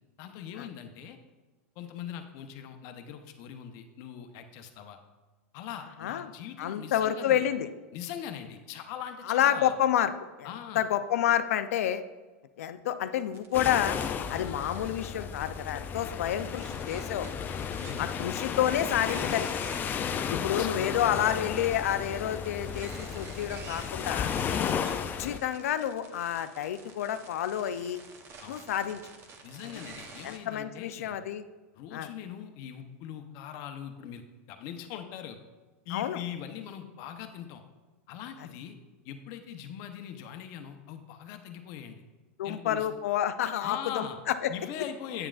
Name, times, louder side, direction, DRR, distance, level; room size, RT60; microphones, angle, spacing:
voice 1, 0.2-1.2 1.8-5.0 5.5-7.5 7.9-9.7 10.4-10.8 14.3-14.5 17.7-18.2 19.7-21.6 24.5-24.7 28.4-28.6 29.4-31.1 31.7-35.4 35.8-37.6 38.1-38.8 39.0-42.0 42.4-42.9 43.6-44.2 44.5-45.3, left 9 dB, 50° left, 7 dB, 0.8 m, -41 dB
voice 2, 6.0-6.3 6.6-7.7 9.3-10.1 10.4-10.5 10.7-12.0 12.6-14.0 14.3-17.3 18.0-19.5 20.4-24.3 25.2-28.0 28.5-29.0 30.2-31.4 31.9-32.1 35.9-36.2 42.4-44.5, left 10 dB, 85° left, 11 dB, 0.5 m, -29 dB
sound 1, 13.3-30.4, right 4 dB, 35° right, 0.9 m, -49 dB
sound 2, 13.5-25.4, left 7 dB, 25° left, 0.4 m, -34 dB
8.7 x 7.1 x 2.4 m, 1.3 s
supercardioid pair, 130°, 8 cm